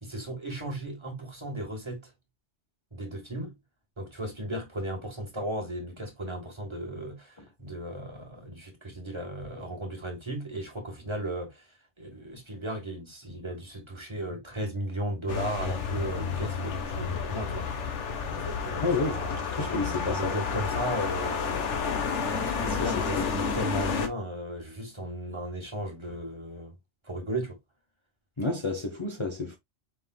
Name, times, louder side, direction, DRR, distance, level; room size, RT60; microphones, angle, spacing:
voice 1, 0.0-2.1 2.9-3.5 4.0-11.6 12.0-17.7 18.3-21.6 22.2-26.7 27.0-27.6, right 1 dB, 25° right, 1.6 m, -35 dB
sound 1, 15.3-24.1, left 6 dB, 85° left, 1.3 m, -31 dB
voice 2, 18.8-20.4 22.6-23.3 28.4-29.6, left 3 dB, 30° left, 0.7 m, -31 dB
5.4 x 3.6 x 2.3 m
omnidirectional pair, 1.2 m